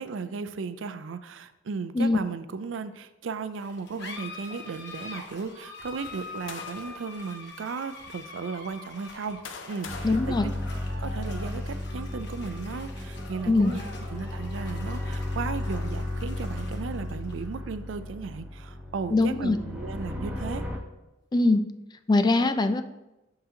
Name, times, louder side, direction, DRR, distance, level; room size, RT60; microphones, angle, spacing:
voice 1, 0.0-9.4 9.7-10.5 11.0-20.6, right 5 dB, 80° right, 12 dB, 0.4 m, -35 dB
sound 1, 3.6-20.5, left 3 dB, 65° left, 1.0 m, -45 dB
sound 2, 6.0-7.1 7.9-8.0 8.9-11.3, left 5 dB, 85° left, 0.6 m, -44 dB
sound 3, 9.8-20.8, left 1 dB, 10° right, 0.7 m, -34 dB
voice 2, 10.0-10.5 13.5-13.7 19.1-19.6 21.3-21.6 22.1-22.8, left 2 dB, 20° left, 9 dB, 0.3 m, -22 dB
11.5 x 3.9 x 2.8 m, 0.96 s
head